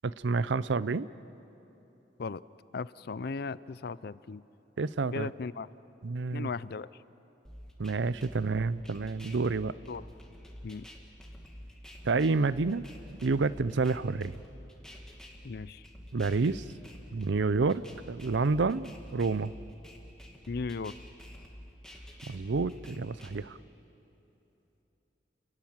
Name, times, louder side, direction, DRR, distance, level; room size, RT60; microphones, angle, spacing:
voice 1, 0.0-1.1 4.8-5.3 6.0-6.5 7.8-9.7 12.0-12.9 13.2-14.4 16.1-16.6 17.1-19.5 22.3-23.6, right 4 dB, 85° right, 17 dB, 0.6 m, -29 dB
voice 2, 2.7-4.4 5.1-5.7 6.3-6.9 9.9-10.0 10.6-10.9 15.4-15.8 20.5-20.9, left 4 dB, 60° left, 18 dB, 0.5 m, -36 dB
sound 1, 7.4-23.5, equal, 5° left, 2.5 m, -49 dB
29.5 x 20.0 x 7.4 m, 3.0 s
head